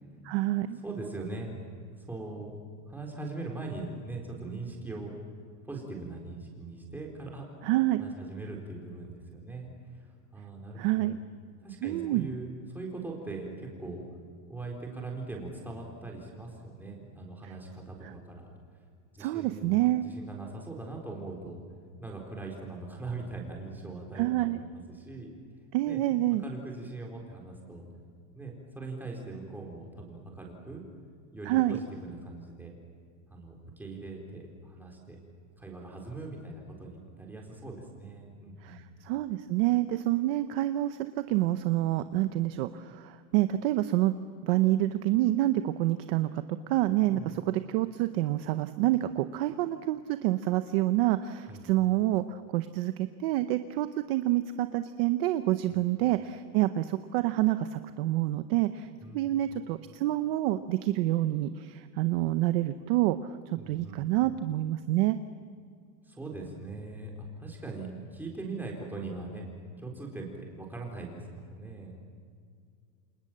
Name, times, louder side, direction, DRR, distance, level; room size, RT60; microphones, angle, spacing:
voice 1, 0.2-0.8 7.6-8.0 10.8-11.2 11.8-12.3 18.0-18.1 19.2-20.0 24.1-24.6 25.7-26.4 31.5-31.8 38.6-44.1 44.4-63.4 63.7-65.2, right 15 dB, 35° right, 10 dB, 0.7 m, -27 dB
voice 2, 0.8-1.6 2.0-2.5 2.9-5.1 5.6-7.4 8.0-10.1 10.3-11.1 11.6-14.0 14.5-18.5 19.1-21.6 22.0-25.3 25.9-26.0 26.4-27.8 28.3-30.8 31.3-32.7 33.3-35.2 35.6-38.9 47.0-47.5 51.5-51.6 55.7-55.8 58.8-59.3 63.6-64.1 66.0-69.5 69.8-71.9, right 3 dB, 5° right, -1 dB, 4.1 m, -41 dB
28.5 x 27.5 x 7.6 m, 2.2 s
supercardioid pair, 175°, 49 cm